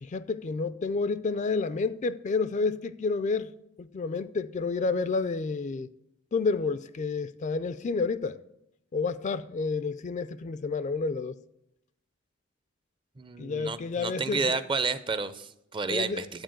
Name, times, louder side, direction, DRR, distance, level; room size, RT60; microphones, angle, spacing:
voice 1, 0.0-3.5 3.8-5.9 6.3-8.4 8.9-11.4 13.4-14.6 15.9-16.3, left 4 dB, 40° left, 0.4 m, -30 dB
voice 2, 13.2-16.4, right 4 dB, 25° right, 0.5 m, -31 dB
11.5 x 4.5 x 7.6 m
head